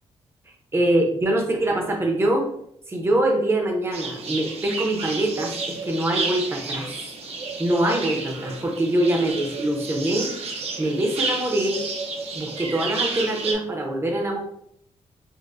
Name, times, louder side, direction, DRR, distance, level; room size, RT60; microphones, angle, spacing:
voice 1, 0.7-2.5 2.9-6.9 7.6-10.3 10.8-11.8 12.3-14.4, right 1 dB, 20° right, 1 dB, 0.7 m, -24 dB
sound 1, 3.9-13.5, right 4 dB, 65° right, 0.6 m, -31 dB
5.2 x 2.1 x 2.5 m, 0.71 s
wide cardioid pair, 165°, 11 cm